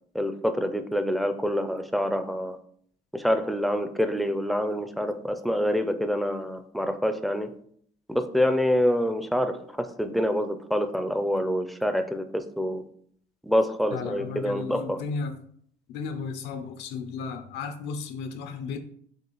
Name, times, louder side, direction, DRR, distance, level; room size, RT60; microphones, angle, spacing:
voice 1, 0.1-2.6 3.1-7.5 8.1-12.8 13.4-15.0, equal, ahead, 0.4 m, -26 dB
voice 2, 13.9-15.3 15.9-18.8, left 5 dB, 85° left, 0.5 m, -34 dB
6.5 x 2.4 x 3.0 m
cardioid pair, 110°, 17 cm